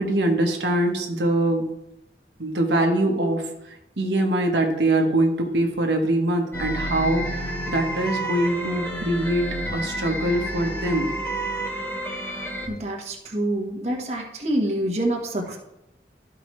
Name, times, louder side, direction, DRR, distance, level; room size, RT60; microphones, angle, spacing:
voice 1, 0.0-1.7 2.4-9.5 9.7-11.1, right 1 dB, 80° right, 2 dB, 1.1 m, -23 dB
sound 1, 6.5-12.7, right 1 dB, 10° left, 0.9 m, -30 dB
voice 2, 12.7-15.6, right 1 dB, 40° right, 0 dB, 1.2 m, -26 dB
12.5 x 4.8 x 3.1 m, 0.86 s
head